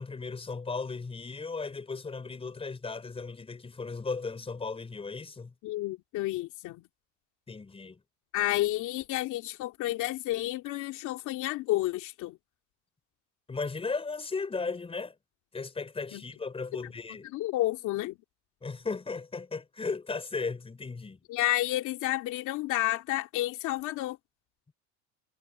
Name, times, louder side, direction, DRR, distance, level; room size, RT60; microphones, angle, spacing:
voice 1, 0.0-5.5 7.5-8.0 13.5-15.1 15.5-17.3 18.6-21.2, left 4 dB, 15° left, 5.1 m, -36 dB
voice 2, 5.6-6.9 8.3-12.4 16.1-16.2 16.8-16.9 17.2-18.2 21.3-24.2, left 16 dB, 60° left, 2.5 m, -30 dB
cardioid pair, 130°, 34 cm